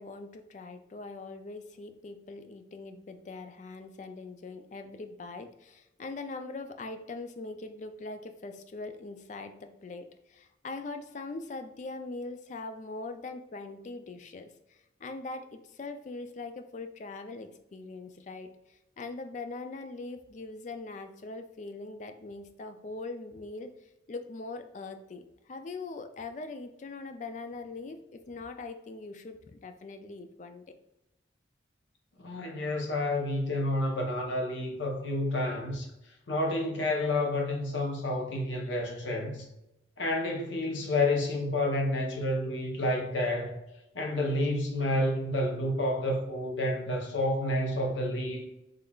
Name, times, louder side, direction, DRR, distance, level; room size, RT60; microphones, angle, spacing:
voice 1, 0.0-23.7 24.1-30.6, left 3 dB, 40° left, 0.3 m, -42 dB
voice 2, 32.2-35.9 36.3-39.5 40.0-43.6 43.9-48.5, left 1 dB, 75° left, 0.8 m, -29 dB
3.7 x 3.2 x 2.3 m
head